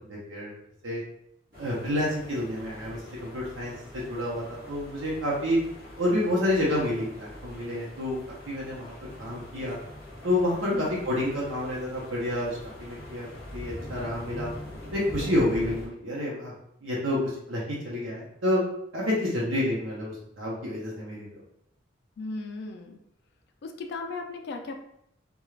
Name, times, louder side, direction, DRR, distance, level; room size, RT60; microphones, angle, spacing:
voice 1, 0.1-0.5 0.8-1.0 1.6-5.6 6.0-8.9 9.2-9.8 10.2-13.3 13.5-14.5 14.9-16.5 16.8-17.2 17.5-18.6 18.9-21.3, left 1 dB, 85° right, -5 dB, 0.7 m, -29 dB
sound 1, 1.5-15.9, left 1 dB, 50° right, 1.0 m, -43 dB
voice 2, 22.2-23.0 23.6-24.8, left 3 dB, 55° left, 4 dB, 0.3 m, -36 dB
2.3 x 2.2 x 3.1 m, 0.74 s
head